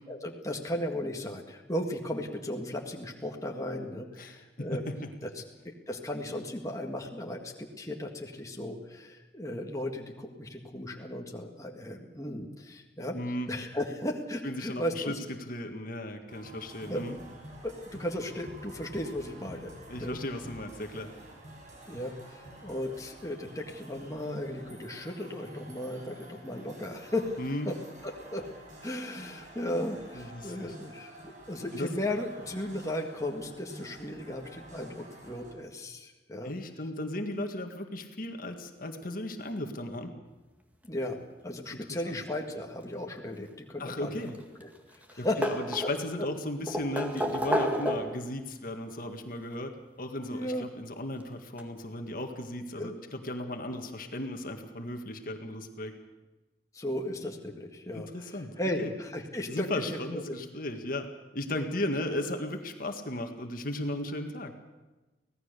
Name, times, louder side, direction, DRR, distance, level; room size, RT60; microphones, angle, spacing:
voice 1, 0.1-4.8 5.2-5.3 5.6-13.2 13.5-15.2 16.9-17.0 17.6-20.2 21.9-27.4 27.7-27.8 28.0-28.5 28.8-36.5 40.8-41.2 41.4-44.1 44.4-45.4 50.3-50.7 52.8-53.0 56.7-60.4, left 1 dB, 20° left, 1 dB, 1.9 m, -36 dB
voice 2, 4.2-5.1 13.1-13.5 14.4-17.2 19.9-21.1 27.4-27.7 30.1-30.8 31.7-31.9 36.4-40.1 41.7-42.2 43.8-44.4 45.2-49.7 50.0-55.9 57.9-58.9 59.5-64.5, left 1 dB, 50° left, 5 dB, 1.8 m, -36 dB
sound 1, 16.3-35.5, right 1 dB, 45° right, 5.9 m, -49 dB
sound 2, 44.1-44.8 45.0-46.2 46.7-48.3 49.5-49.6 51.2-51.3 51.6-51.7, equal, 10° right, 1.9 m, -31 dB
25.0 x 17.5 x 6.8 m, 1.1 s
head